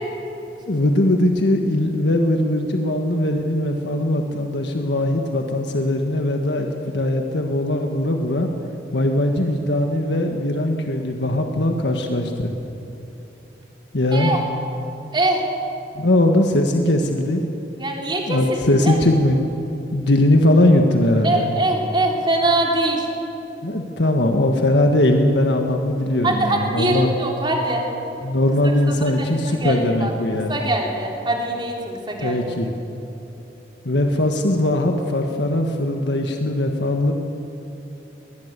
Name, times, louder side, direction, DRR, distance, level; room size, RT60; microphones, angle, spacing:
voice 1, 0.7-8.5 8.9-12.5 13.9-14.4 15.9-17.4 18.3-19.4 19.9-21.5 23.6-27.2 28.2-30.7 32.2-32.7 33.8-37.1, left 1 dB, 80° left, 3 dB, 1.5 m, -20 dB
voice 2, 15.1-15.5 17.8-18.6 18.8-19.0 21.2-23.1 26.2-27.9 28.6-30.1 30.5-32.4, right 2 dB, 25° right, 0 dB, 3.6 m, -23 dB
21.0 x 20.5 x 8.2 m, 3.0 s
head